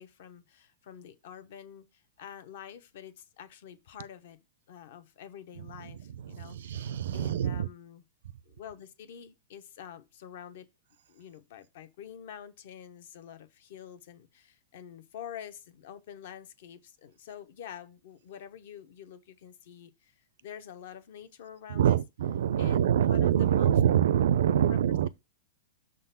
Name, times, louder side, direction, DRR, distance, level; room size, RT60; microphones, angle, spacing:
voice 1, 0.0-4.4 4.7-8.0 8.4-10.7 11.1-22.0 22.6-23.7 24.7-24.8, left 9 dB, 50° left, 0.9 m, -47 dB
voice 2, 5.6-7.7 21.7-25.1, right 10 dB, 70° right, 0.4 m, -26 dB
6.6 x 3.8 x 5.6 m
supercardioid pair, 175°, 0 cm